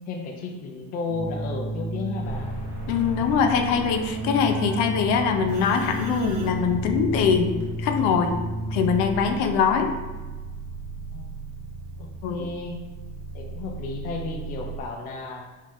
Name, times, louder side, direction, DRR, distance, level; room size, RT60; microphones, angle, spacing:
voice 1, 0.1-2.5 11.1-11.4 12.0-12.8 13.3-15.5, left 3 dB, 30° left, 1 dB, 0.4 m, -33 dB
Keyboard (musical), 1.1-9.4, right 2 dB, 60° right, 1.3 m, -32 dB
sound 1, 2.2-14.8, right 3 dB, 5° right, 0.8 m, -37 dB
voice 2, 2.9-8.3 8.7-9.9 12.2-12.5, left 6 dB, 70° left, 5 dB, 0.6 m, -23 dB
5.1 x 2.7 x 3.5 m, 1.2 s
cardioid pair, 175°, 30 cm